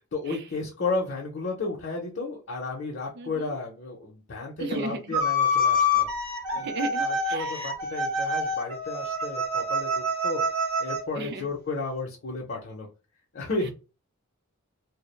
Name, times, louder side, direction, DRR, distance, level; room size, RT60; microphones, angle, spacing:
voice 1, 0.1-6.1 6.5-6.7 7.0-10.4 10.8-12.9 13.3-13.7, left 3 dB, 55° left, 0.6 m, -33 dB
voice 2, 3.2-3.5 4.6-5.1 6.6-7.7 11.1-11.4, right 3 dB, 50° right, 0.4 m, -34 dB
sound 1, 5.1-11.0, left 2 dB, 90° right, 0.8 m, -26 dB
2.3 x 2.0 x 3.0 m
head